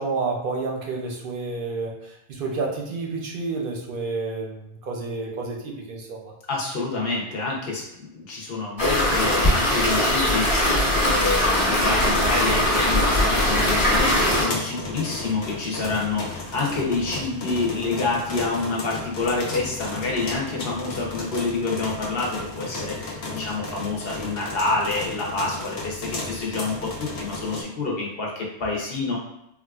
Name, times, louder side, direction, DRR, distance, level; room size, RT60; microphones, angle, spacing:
voice 1, 0.0-6.3 22.8-22.9, right 3 dB, 60° right, 0 dB, 0.6 m, -30 dB
voice 2, 6.5-29.2, left 3 dB, 65° left, -2 dB, 0.9 m, -28 dB
sound 1, 8.8-14.4, left 1 dB, 25° left, 1.0 m, -20 dB
sound 2, 12.1-27.6, left 3 dB, 85° left, 0.9 m, -34 dB
3.7 x 2.4 x 2.3 m, 0.81 s
omnidirectional pair, 1.1 m